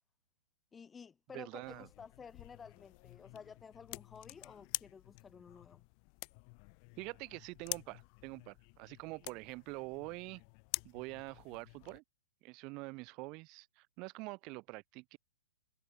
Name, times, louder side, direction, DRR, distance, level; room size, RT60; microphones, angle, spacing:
voice 1, 0.7-5.8, left 6 dB, 15° left, 3.1 m, -53 dB
voice 2, 1.3-1.9 7.0-10.4 10.8-12.0 12.4-15.2, right 26 dB, 35° right, 6.6 m, -45 dB
sound 1, 1.6-12.0, left 40 dB or more, 40° left, 1.9 m, -47 dB
hypercardioid pair, 135°, 0 cm